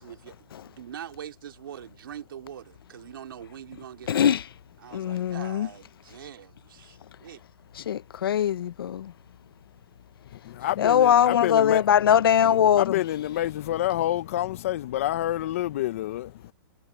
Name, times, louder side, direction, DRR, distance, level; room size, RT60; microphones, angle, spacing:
voice 1, 0.0-4.4 4.8-7.4 10.5-10.7 11.1-11.2, right 10 dB, 70° right, 2.8 m, -43 dB
voice 2, 4.1-4.5 4.9-5.7 7.8-9.1 10.8-13.0, left 9 dB, 85° left, 0.6 m, -21 dB
voice 3, 10.4-11.8 12.8-16.3, left 13 dB, 40° left, 0.5 m, -28 dB
hypercardioid pair, 170°, 12 cm